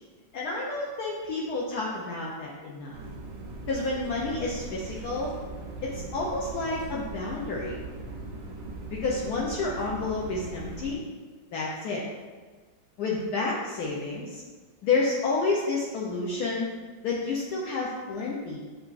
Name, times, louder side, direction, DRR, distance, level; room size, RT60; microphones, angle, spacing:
voice 1, 0.3-3.0 3.7-5.4 5.8-7.8 8.9-11.0 11.5-12.0 13.0-14.4 14.8-16.7 17.0-18.6, left 3 dB, 75° left, -3 dB, 0.9 m, -30 dB
sound 1, 2.9-10.9, right 2 dB, 90° right, 1.4 m, -39 dB
6.7 x 2.4 x 2.4 m, 1.4 s
omnidirectional pair, 2.1 m